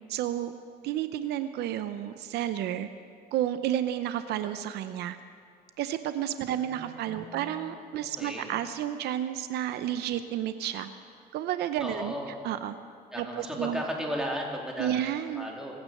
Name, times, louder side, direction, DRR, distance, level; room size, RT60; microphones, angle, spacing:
voice 1, 0.1-0.5 0.8-2.9 3.3-5.2 5.8-10.9 11.3-12.1 12.4-12.7 13.2-13.8 14.8-15.4, right 11 dB, 80° right, 11 dB, 0.7 m, -31 dB
voice 2, 6.5-7.7 8.2-8.5 11.8-12.4 13.1-15.7, equal, 5° right, -2 dB, 3.2 m, -36 dB
22.5 x 9.5 x 6.6 m, 2.2 s
cardioid pair, 110°, 17 cm